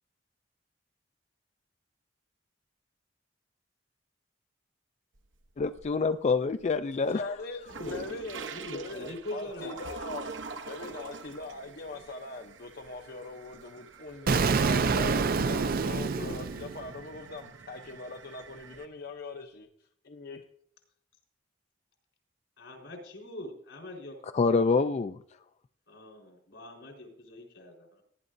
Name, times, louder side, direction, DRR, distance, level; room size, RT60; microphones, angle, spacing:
sound 1, 5.1-6.1 6.5-18.9, right 4 dB, 85° right, 1.0 m, -46 dB
voice 1, 5.6-7.2 24.3-25.2, left 4 dB, 35° left, 0.4 m, -26 dB
voice 2, 7.1-10.3 10.7-19.7 20.0-20.4, left 3 dB, 55° left, 0.7 m, -41 dB
voice 3, 8.5-9.8 11.6-12.0 16.2-16.5 22.6-24.2 25.9-28.0, left 1 dB, 85° left, 4.2 m, -42 dB
Explosion, 14.3-17.2, right 4 dB, 50° right, 0.5 m, -27 dB
18.0 x 11.0 x 2.6 m
head